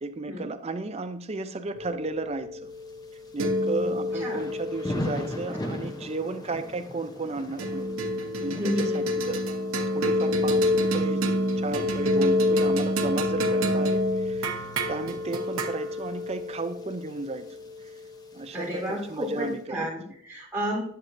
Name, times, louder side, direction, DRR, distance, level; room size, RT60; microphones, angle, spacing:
voice 1, 0.0-2.7 3.3-7.9 8.4-9.5 9.9-11.3 11.6-17.5 18.3-19.9, right 3 dB, 30° right, 9 dB, 0.4 m, -34 dB
sound 1, 1.8-6.4 7.6-18.1, left 1 dB, 65° right, 0.9 m, -28 dB
Thunder / Rain, 2.7-19.6, left 1 dB, 15° left, 0.7 m, -42 dB
voice 2, 8.6-9.0 18.5-20.8, equal, 10° right, -6 dB, 3.6 m, -31 dB
10.5 x 7.8 x 2.6 m, 0.67 s
head